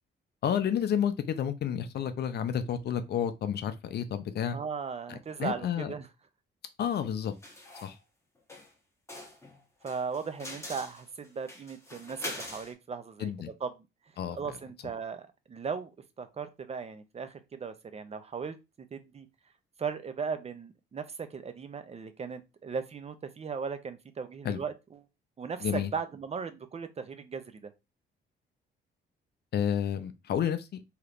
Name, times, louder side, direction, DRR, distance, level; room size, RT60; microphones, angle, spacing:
voice 1, 0.4-4.6 5.1-5.9 6.8-7.3 7.8-7.9 13.2-13.5 14.2-14.4 24.4-24.6 25.6-25.9 29.5-30.8, left 9 dB, 55° left, 0.5 m, -30 dB
voice 2, 4.5-6.1 9.8-13.3 13.6-13.7 14.4-15.9 16.2-18.6 18.9-19.3 19.8-25.0 25.4-27.7, right 5 dB, 30° right, 0.5 m, -37 dB
sound 1, 7.4-7.9 8.5-8.7 9.1-12.7, left 1 dB, 15° left, 1.1 m, -43 dB
3.2 x 2.8 x 2.4 m
cardioid pair, 90°, 20 cm